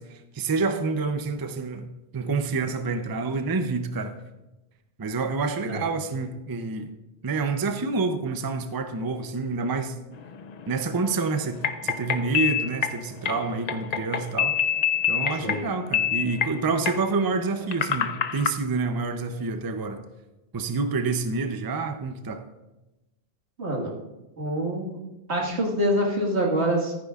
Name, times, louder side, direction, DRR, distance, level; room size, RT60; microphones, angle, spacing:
voice 1, 0.0-1.9 2.1-4.1 5.0-6.9 7.2-10.0 10.7-14.6 15.1-20.0 20.5-22.4, right 4 dB, 25° right, 8 dB, 0.5 m, -28 dB
sound 1, 10.1-18.5, left 9 dB, 55° left, 0.5 m, -28 dB
voice 2, 23.6-23.9 24.4-25.0 25.3-26.9, right 1 dB, 80° right, -1 dB, 2.1 m, -25 dB
14.0 x 9.5 x 2.4 m, 1.0 s
omnidirectional pair, 1.1 m